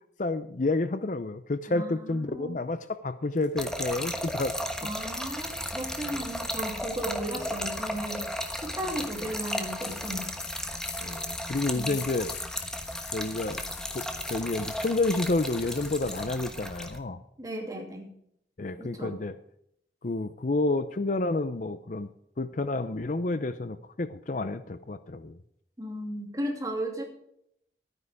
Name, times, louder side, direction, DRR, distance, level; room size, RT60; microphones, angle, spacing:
voice 1, 0.2-4.5 6.1-6.3 11.0-12.3 13.1-13.6 13.9-17.2 18.6-19.3 20.0-22.1 22.4-25.4, left 2 dB, 45° left, 12 dB, 0.6 m, -30 dB
voice 2, 1.7-2.6 4.8-8.2 8.6-10.3 11.7-12.0 17.4-18.1 18.8-19.1 25.8-27.0, right 1 dB, 20° right, 1 dB, 2.7 m, -35 dB
sound 1, 3.4-16.3, left 9 dB, 80° left, 1.8 m, -47 dB
Trickle dribble / Fill (with liquid), 3.6-17.0, equal, 5° left, 1.2 m, -35 dB
12.5 x 9.8 x 4.8 m, 0.73 s
head